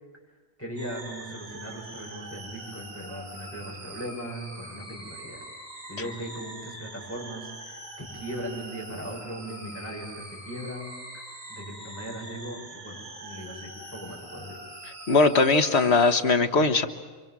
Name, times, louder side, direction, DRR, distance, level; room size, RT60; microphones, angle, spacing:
voice 1, 0.6-5.4 5.9-11.2 11.5-14.6, right 1 dB, 10° left, -3 dB, 7.5 m, -38 dB
sound 1, 0.8-16.2, right 1 dB, 90° right, 6.9 m, -43 dB
voice 2, 15.1-16.9, left 3 dB, 55° left, 7 dB, 1.6 m, -20 dB
28.0 x 24.5 x 7.5 m, 1.3 s
omnidirectional pair, 1.4 m